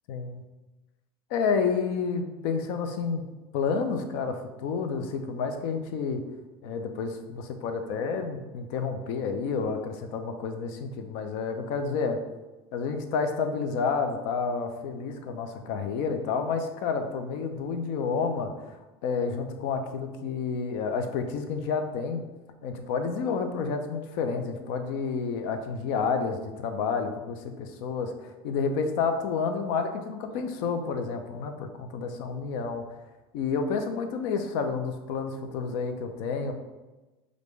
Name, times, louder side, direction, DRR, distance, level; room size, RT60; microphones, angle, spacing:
voice 1, 0.1-0.4 1.3-3.2 3.5-6.2 6.6-12.2 12.7-18.8 19.0-22.2 22.6-32.8 33.3-36.5, left 5 dB, 70° left, 7 dB, 0.6 m, -30 dB
5.0 x 2.6 x 3.2 m, 1.1 s
supercardioid pair, 115°, 13 cm